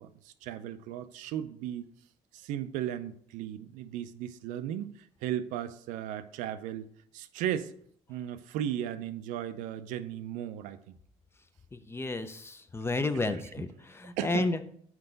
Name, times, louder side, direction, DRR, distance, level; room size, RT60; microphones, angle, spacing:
voice 1, 0.0-1.8 2.3-6.9 7.1-7.7 8.1-10.9 13.3-13.4 14.2-14.5, right 11 dB, 90° right, 11 dB, 0.4 m, -36 dB
voice 2, 11.7-14.6, left 2 dB, 20° left, 10 dB, 0.6 m, -32 dB
5.8 x 4.7 x 3.9 m, 0.62 s
cardioid pair, 95°, 13 cm